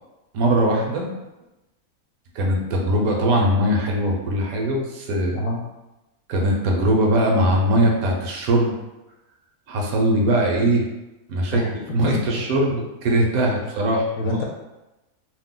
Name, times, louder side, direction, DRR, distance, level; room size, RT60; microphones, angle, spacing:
voice 1, 0.3-1.1 2.3-5.4 6.3-8.7 9.7-10.9 11.3-11.6 11.9-14.4, right 1 dB, 75° right, 0 dB, 1.0 m, -21 dB
voice 2, 12.0-12.4 14.2-14.4, left 1 dB, 75° left, 0 dB, 1.0 m, -27 dB
2.8 x 2.0 x 3.6 m, 1.0 s
omnidirectional pair, 1.6 m